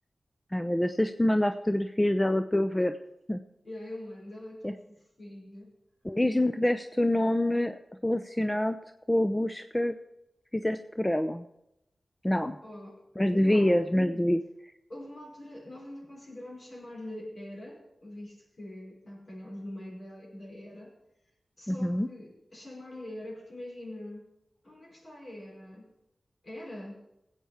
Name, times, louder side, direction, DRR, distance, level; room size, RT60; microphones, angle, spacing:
voice 1, 0.5-2.9 3.3-3.4 4.6-4.7 6.0-8.8 9.1-9.9 10.5-11.4 12.2-12.6 13.2-14.4 21.7-22.1, left 1 dB, 15° left, 8 dB, 0.6 m, -26 dB
voice 2, 3.6-5.7 12.6-13.8 14.9-20.9 21.6-24.3 24.6-25.9 26.4-27.0, left 1 dB, 55° left, -3 dB, 5.6 m, -43 dB
18.0 x 8.3 x 4.4 m, 0.84 s
cardioid pair, 50°, 0 cm